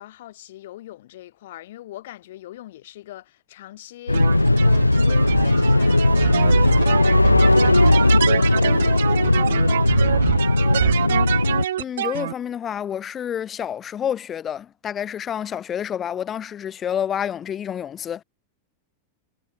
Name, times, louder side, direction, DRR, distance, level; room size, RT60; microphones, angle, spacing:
voice 1, 0.0-11.0, left 14 dB, 55° left, 4.6 m, -42 dB
sound 1, 4.1-11.7, left 2 dB, 85° left, 0.4 m, -17 dB
sound 2, 4.1-12.3, right 11 dB, 60° right, 0.9 m, -25 dB
voice 2, 11.8-18.2, left 9 dB, 25° left, 0.8 m, -28 dB
figure-of-eight pair, 90°, 0 cm